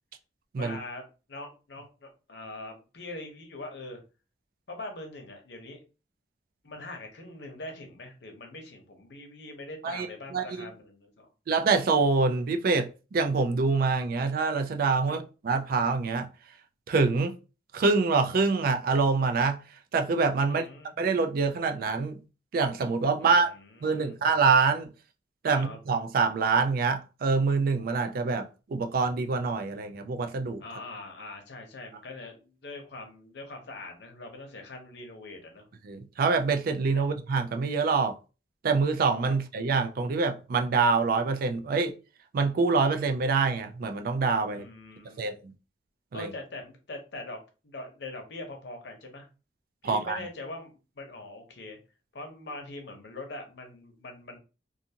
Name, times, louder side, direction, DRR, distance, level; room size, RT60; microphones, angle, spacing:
voice 1, 0.6-4.0 4.7-5.8 6.6-11.3 15.0-15.2 20.4-21.0 23.2-24.2 25.4-25.8 30.6-35.7 36.9-37.1 44.5-45.4 46.1-47.4 47.6-49.3 49.8-51.8 52.1-54.4, left 2 dB, 65° left, 0.8 m, -42 dB
voice 2, 10.3-10.7 11.5-16.3 16.9-17.3 17.7-19.6 19.9-20.7 21.0-22.2 22.5-23.5 23.8-24.9 25.4-30.6 35.9-38.2 38.6-41.9 42.3-44.6 45.2-45.3 46.1-46.3 49.8-50.2, right 4 dB, 55° right, 0.3 m, -25 dB
2.5 x 2.4 x 2.8 m
head